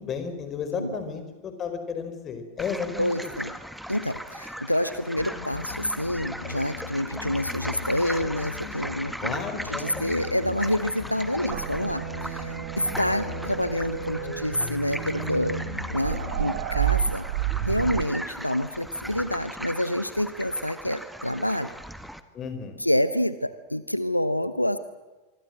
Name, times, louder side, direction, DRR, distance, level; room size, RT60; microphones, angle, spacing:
voice 1, 0.0-3.3 9.2-10.0 22.3-22.8, left 6 dB, 25° left, 8 dB, 4.7 m, -33 dB
sound 1, 2.6-22.2, equal, ahead, 1.5 m, -38 dB
voice 2, 3.0-3.5 3.9-9.4 9.7-15.6 15.9-17.2 17.6-21.7 22.8-24.8, left 1 dB, 90° left, 14 dB, 0.9 m, -27 dB
sound 2, 5.2-17.0, left 6 dB, 55° left, 3.4 m, -39 dB
sound 3, 11.5-18.1, right 13 dB, 55° right, 1.4 m, -31 dB
25.0 x 25.0 x 7.7 m, 1.3 s
figure-of-eight pair, 90°, 0 cm